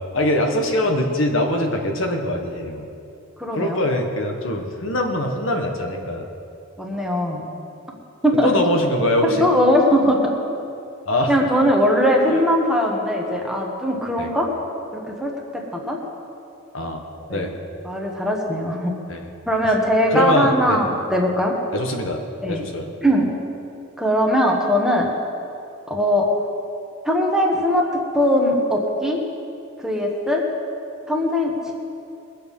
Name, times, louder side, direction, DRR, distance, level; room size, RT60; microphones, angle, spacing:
voice 1, 0.1-2.9 3.5-6.3 8.4-9.5 11.1-11.3 14.2-14.3 16.7-17.0 17.3-17.5 19.1-19.2 19.6-19.7 20.1-20.8 21.7-22.9, left 1 dB, 70° left, 3 dB, 1.5 m, -23 dB
voice 2, 3.4-3.8 6.8-7.4 8.2-8.5 9.2-10.3 11.3-14.5 14.9-15.3 15.7-16.0 17.3-17.4 17.8-18.9 19.5-21.5 22.4-22.6 23.0-23.3 24.0-25.1 25.9-26.3 27.0-29.2 29.8-30.4 31.1-31.7, equal, 5° right, -1 dB, 1.5 m, -20 dB
21.5 x 7.6 x 5.5 m, 2.6 s
head